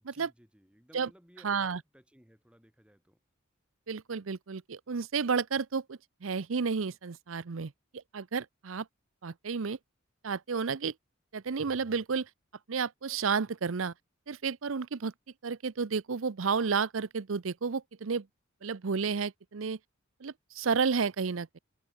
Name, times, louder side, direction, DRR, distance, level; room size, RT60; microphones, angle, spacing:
voice 1, 0.1-3.2, equal, 5° right, 4.7 m, -59 dB
voice 2, 1.4-1.8 3.9-8.9 9.2-9.8 10.2-10.9 11.3-12.3 12.7-13.9 14.3-15.1 15.4-18.3 18.6-19.8 20.2-21.6, right 5 dB, 75° right, 0.7 m, -31 dB
head